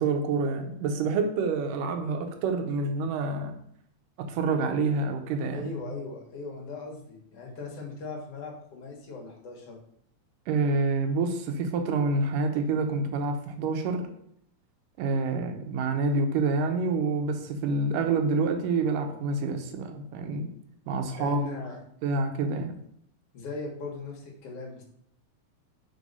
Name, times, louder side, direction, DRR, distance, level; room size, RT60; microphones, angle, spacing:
voice 1, 0.0-3.5 4.2-5.7 10.5-14.1 15.0-20.5 20.9-21.4 22.0-22.8, right 3 dB, 80° right, 5 dB, 2.4 m, -27 dB
voice 2, 5.5-9.8 21.2-21.8 23.3-24.8, left 4 dB, 55° left, 0 dB, 1.9 m, -38 dB
4.8 x 4.6 x 5.3 m, 0.70 s
omnidirectional pair, 3.8 m